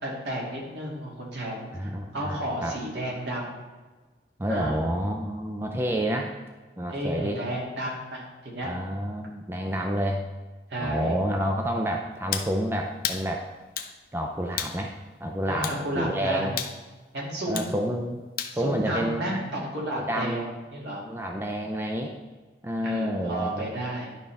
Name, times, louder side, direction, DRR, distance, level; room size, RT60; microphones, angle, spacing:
voice 1, 0.0-1.7 2.1-3.6 4.5-4.9 6.9-8.7 10.7-11.2 15.5-16.6 17.1-17.8 18.5-20.5 20.7-21.0 22.8-24.1, right 1 dB, 65° right, -3 dB, 2.5 m, -32 dB
voice 2, 1.7-2.8 4.4-6.3 6.8-7.4 8.6-10.3 10.8-13.5 14.1-14.9 15.2-16.5 17.5-18.2 18.5-19.6 19.9-20.5 21.0-22.1 22.6-23.7, equal, 15° right, 2 dB, 0.5 m, -29 dB
sound 1, 12.3-12.5 13.0-13.2 13.8-13.9 14.6-14.8 15.6-15.8 16.6-16.8 17.5-17.7 18.4-18.6, left 8 dB, 55° left, 0.7 m, -31 dB
10.5 x 5.5 x 3.5 m, 1.3 s
head